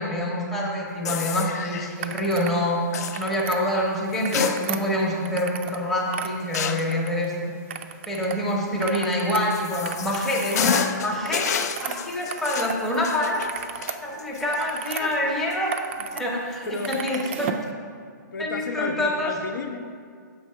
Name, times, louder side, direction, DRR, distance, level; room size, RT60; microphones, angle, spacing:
voice 1, 0.0-2.8 3.2-7.5 8.1-11.5 11.8-13.4 14.0-15.7 16.1-17.5 18.4-19.3, left 1 dB, ahead, -4 dB, 0.7 m, -26 dB
sound 1, 1.0-2.0 2.9-3.2 4.1-5.0 5.4-5.5 6.5-7.0 9.0-15.1 15.5-15.6 16.5-16.8, left 8 dB, 55° left, 0.4 m, -30 dB
sound 2, 2.0-2.6 2.9-3.6 4.1-5.8 6.1-7.3 7.7-8.4 8.7-12.8 13.1-15.0 15.5-16.2 16.5-17.7, right 8 dB, 35° right, 0.4 m, -35 dB
voice 2, 15.0-15.4 16.6-16.9 18.3-19.8, left 3 dB, 85° left, 5 dB, 0.7 m, -32 dB
6.9 x 4.7 x 5.4 m, 2.1 s
hypercardioid pair, 160°, 11 cm